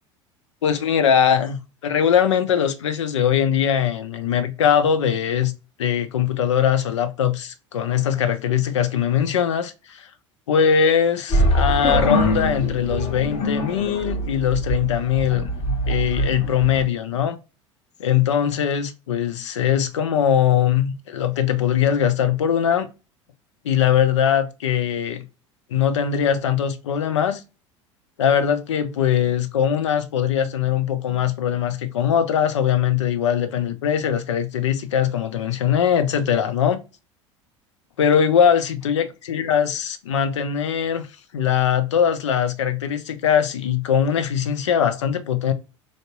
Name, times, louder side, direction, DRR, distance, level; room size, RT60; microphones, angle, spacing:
voice 1, 0.6-1.6 1.8-5.5 5.8-10.1 10.5-15.5 15.9-17.4 18.0-22.9 23.6-25.2 25.7-27.4 28.2-36.8 38.0-41.1 41.3-45.5, left 8 dB, 65° left, 0.5 m, -21 dB
sound 1, 11.3-16.8, equal, 35° left, 1.0 m, -23 dB
3.5 x 2.6 x 2.4 m
figure-of-eight pair, 75°, 16 cm